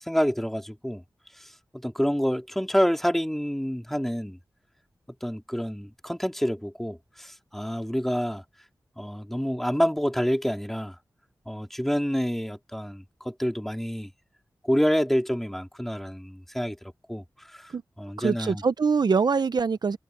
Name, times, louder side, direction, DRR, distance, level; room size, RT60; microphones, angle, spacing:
voice 1, 0.1-1.0 1.7-4.4 5.2-8.4 9.0-11.0 11.5-14.1 14.6-16.8 17.1-17.2 17.5-17.7 18.0-18.6, equal, 5° left, 3.6 m, -27 dB
voice 2, 18.2-20.0, right 5 dB, 65° right, 0.8 m, -24 dB
wide cardioid pair, 70°, 8 cm